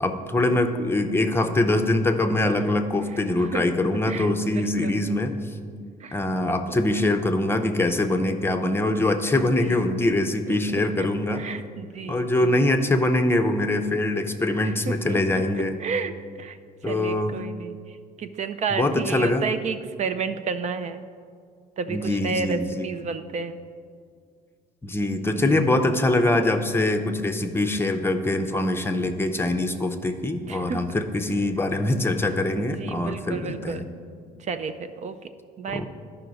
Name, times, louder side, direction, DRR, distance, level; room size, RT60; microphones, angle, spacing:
voice 1, 0.0-5.3 6.1-11.4 12.1-15.7 16.8-17.4 18.7-19.5 21.9-22.9 24.8-33.9 35.7-35.9, left 2 dB, 15° left, 6 dB, 0.6 m, -23 dB
voice 2, 3.1-3.6 4.1-5.0 6.0-6.2 6.5-6.8 9.6-9.8 11.0-11.1 11.3-12.6 14.6-15.2 15.5-16.1 16.4-16.6 16.9-17.8 18.2-21.0 21.8-23.6 25.3-25.6 30.5-30.8 32.6-33.8 34.4-35.2 35.6-35.9, right 5 dB, 45° right, 9 dB, 0.4 m, -31 dB
12.5 x 5.6 x 4.0 m, 2.2 s
cardioid pair, 110°, 17 cm